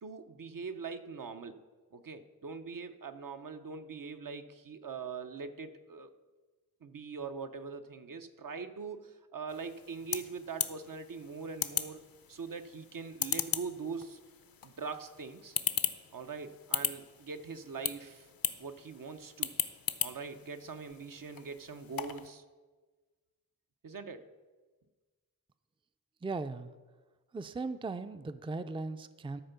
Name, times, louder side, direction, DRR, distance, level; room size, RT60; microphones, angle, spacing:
voice 1, 0.0-1.6 1.9-6.1 6.8-14.2 14.6-15.6 16.1-18.3 18.6-19.6 20.0-22.4 23.8-24.3, right 5 dB, 65° right, 8 dB, 0.7 m, -42 dB
sound 1, 9.5-22.3, left 8 dB, 75° left, 0.6 m, -38 dB
voice 2, 26.2-26.7 27.3-29.4, right 3 dB, 15° right, 11 dB, 0.4 m, -38 dB
13.0 x 4.4 x 6.8 m, 1.3 s
wide cardioid pair, 75°, 35 cm